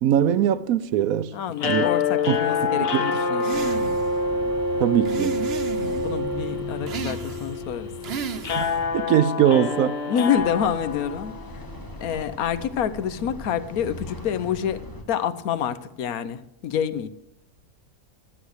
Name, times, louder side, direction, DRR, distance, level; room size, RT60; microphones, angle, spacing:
voice 1, 0.0-1.3 1.6-1.9 2.3-2.4 2.8-3.0 4.8-5.4 8.5-10.0, right 10 dB, 70° right, 1.0 m, -21 dB
voice 2, 1.3-3.9 5.8-7.9 10.1-11.6 12.0-14.8 15.1-17.1, left 8 dB, 70° left, 1.2 m, -27 dB
sound 1, 1.6-11.8, left 4 dB, 45° left, 1.0 m, -27 dB
sound 2, 3.4-4.2 5.0-6.1 6.9-7.6 8.0-8.8, right 6 dB, 45° right, 1.0 m, -33 dB
sound 3, 3.5-9.0 10.4-15.0, left 1 dB, 15° left, 1.2 m, -39 dB
12.0 x 8.2 x 6.4 m
omnidirectional pair, 1.6 m